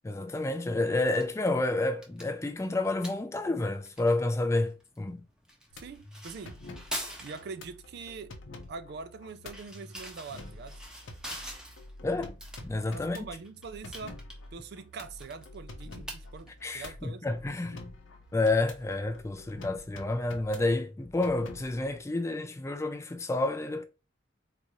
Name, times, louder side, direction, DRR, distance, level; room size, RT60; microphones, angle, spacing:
voice 1, 0.0-5.2 12.0-12.3 12.6-13.2 16.6-17.8 18.3-23.8, left 2 dB, 15° left, 0.3 m, -29 dB
sound 1, 0.9-19.3, equal, 5° right, 0.7 m, -47 dB
sound 2, 5.7-22.0, left 2 dB, 75° left, 0.7 m, -48 dB
voice 2, 5.7-6.6 7.2-8.3 8.7-10.8 12.9-14.2 14.5-17.3, right 4 dB, 55° right, 0.4 m, -43 dB
4.0 x 2.4 x 2.9 m
head